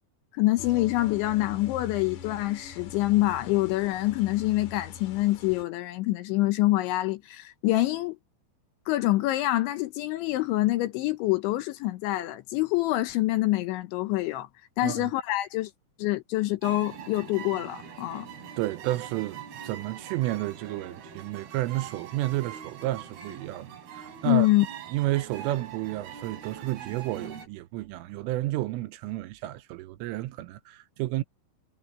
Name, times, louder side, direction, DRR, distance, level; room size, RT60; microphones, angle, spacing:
voice 1, 0.3-8.2 8.9-14.5 14.8-15.7 16.0-18.3 24.2-24.7, left 17 dB, 75° left, 3.0 m, -26 dB
fence resonance, 0.6-5.6, left 7 dB, 60° left, 2.1 m, -43 dB
sound 1, 16.6-27.5, right 8 dB, 55° right, 4.7 m, -43 dB
voice 2, 18.6-24.5 24.9-31.2, right 16 dB, 85° right, 3.3 m, -31 dB
omnidirectional pair, 6.0 m